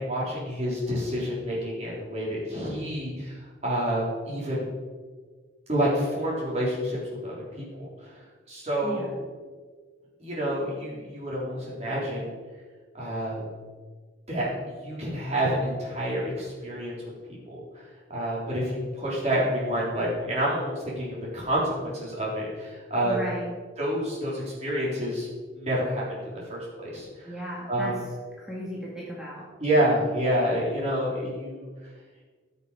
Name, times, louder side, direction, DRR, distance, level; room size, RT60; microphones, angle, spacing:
voice 1, 0.0-3.4 3.6-4.7 5.7-9.1 10.2-12.4 12.9-13.4 14.3-14.5 14.8-16.9 17.3-17.8 18.1-23.2 23.8-25.3 25.5-27.3 27.7-27.9 29.6-31.7, equal, 35° right, -5 dB, 3.8 m, -28 dB
voice 2, 8.8-9.1 23.0-23.5 27.2-28.0 28.4-29.5, equal, 5° right, -6 dB, 1.8 m, -35 dB
14.5 x 6.8 x 5.1 m, 1.5 s
head